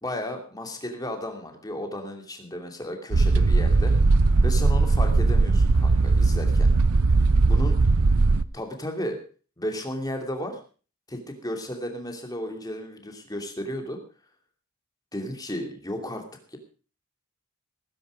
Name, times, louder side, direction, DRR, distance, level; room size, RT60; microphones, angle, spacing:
voice 1, 0.0-3.9 4.4-6.7 7.4-7.8 8.5-9.2 9.6-10.6 11.1-14.0 15.1-16.2 16.5-16.6, left 1 dB, 15° left, 4 dB, 2.7 m, -33 dB
sound 1, 3.1-8.4, right 3 dB, 80° right, 0.7 m, -19 dB
19.0 x 10.0 x 5.1 m, 0.39 s
head